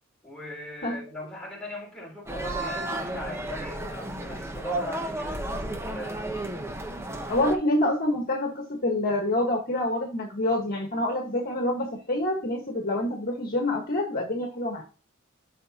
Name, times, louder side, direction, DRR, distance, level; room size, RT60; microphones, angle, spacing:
voice 1, 0.2-6.2, equal, 5° left, 3.8 m, -39 dB
sound 1, 2.3-7.6, right 1 dB, 10° right, 1.0 m, -33 dB
voice 2, 7.3-14.8, left 1 dB, 45° left, 1.6 m, -27 dB
12.0 x 5.5 x 2.9 m
head